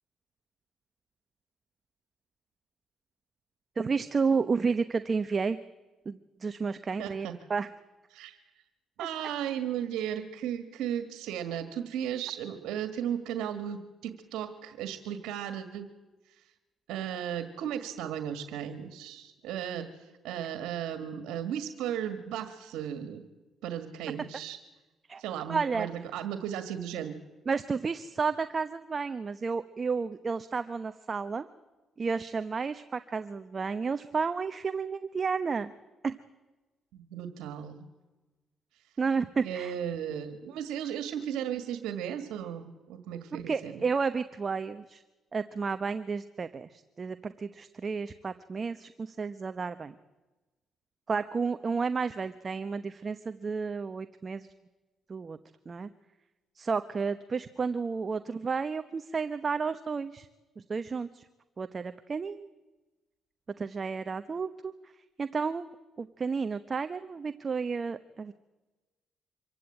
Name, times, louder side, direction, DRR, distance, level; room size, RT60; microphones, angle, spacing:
voice 1, 3.8-5.6 6.1-7.7 9.0-9.1 25.1-25.2 25.5-25.9 27.5-31.5 32.0-35.7 36.0-36.1 39.0-39.7 43.3-45.0 45.3-49.9 51.1-54.5 55.1-55.4 55.7-55.9 56.6-60.3 60.6-61.2 61.6-62.5 63.6-64.7 65.2-65.7 66.0-68.3, right 5 dB, 35° right, 10 dB, 0.9 m, -31 dB
voice 2, 7.0-7.4 8.1-8.4 9.0-15.9 16.9-23.2 23.6-24.6 25.2-27.2 36.9-37.9 39.4-43.8, right 9 dB, 90° right, 9 dB, 1.8 m, -35 dB
25.0 x 15.5 x 8.8 m, 1.2 s
cardioid pair, 90°, 0 cm